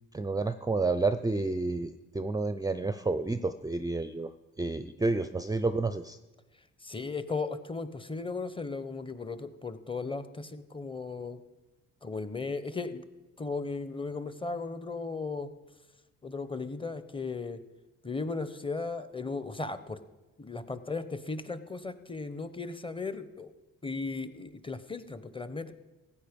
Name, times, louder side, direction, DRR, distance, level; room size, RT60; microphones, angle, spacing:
voice 1, 0.1-4.3 4.6-6.2, right 3 dB, 10° right, 10 dB, 0.5 m, -30 dB
voice 2, 6.8-11.4 12.0-13.0 13.4-15.5 16.2-17.6 18.0-20.0 20.4-23.5 23.8-25.7, left 4 dB, 15° left, 12 dB, 1.0 m, -36 dB
15.5 x 9.1 x 5.2 m, 1.1 s
cardioid pair, 90°, 30 cm